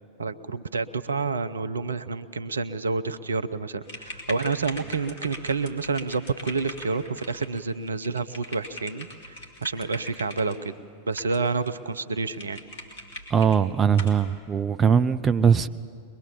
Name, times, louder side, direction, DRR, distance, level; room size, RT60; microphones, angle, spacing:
voice 1, 0.2-9.4 9.6-10.7 11.1-12.6, right 4 dB, 75° right, 0.6 m, -29 dB
sound 1, 3.8-10.6 11.1-11.7 12.0-12.1 12.3-13.6 13.9-14.2, left 1 dB, 60° left, 3.0 m, -41 dB
voice 2, 13.3-15.7, right 7 dB, 20° right, 0.5 m, -21 dB
22.5 x 21.5 x 7.2 m
figure-of-eight pair, 90°, 0 cm